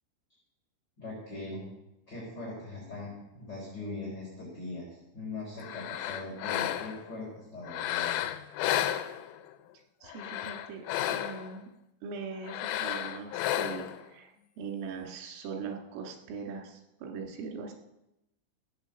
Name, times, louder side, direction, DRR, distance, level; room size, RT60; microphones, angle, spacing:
voice 1, 1.0-1.6 2.1-8.2, left 2 dB, 20° left, -6 dB, 4.3 m, -41 dB
sound 1, 5.6-7.1 7.7-9.5 10.1-11.6 12.4-14.0, left 12 dB, 85° left, 3.4 m, -32 dB
voice 2, 10.0-11.7 12.0-14.3 14.6-17.7, right 5 dB, 85° right, 2 dB, 4.5 m, -41 dB
16.0 x 9.0 x 7.0 m, 0.88 s
omnidirectional pair, 5.7 m